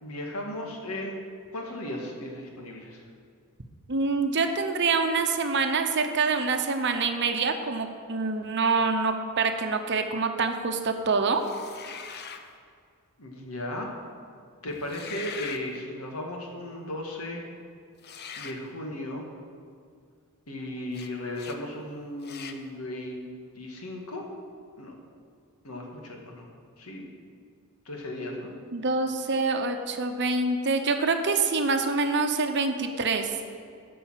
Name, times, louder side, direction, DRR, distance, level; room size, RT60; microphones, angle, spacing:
voice 1, 0.0-1.2 1.5-3.0 13.2-13.9 14.6-17.4 18.4-19.2 20.5-24.2 24.8-24.9 25.6-26.5 26.8-27.1 27.9-28.5, left 1 dB, 85° left, 1 dB, 1.9 m, -36 dB
voice 2, 3.9-11.4 28.7-33.3, right 4 dB, 55° right, 6 dB, 0.9 m, -26 dB
sound 1, 11.4-12.5 14.8-15.6 18.0-18.6 20.9-21.1 21.4-21.6 22.2-22.6, left 6 dB, 50° left, 0.7 m, -41 dB
13.5 x 5.5 x 7.5 m, 2.2 s
head